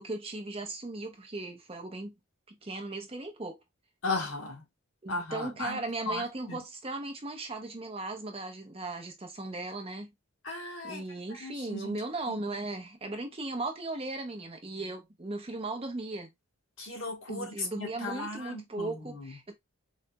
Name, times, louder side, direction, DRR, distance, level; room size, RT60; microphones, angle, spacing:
voice 1, 0.0-2.1 2.5-3.6 5.0-10.1 10.8-16.3 17.3-19.6, right 2 dB, 25° right, 0.6 m, -37 dB
voice 2, 4.0-4.6 5.1-5.8 6.1-6.6 10.4-11.0 11.4-11.9 16.8-19.4, left 2 dB, 65° left, 1.2 m, -36 dB
4.0 x 3.1 x 2.2 m
head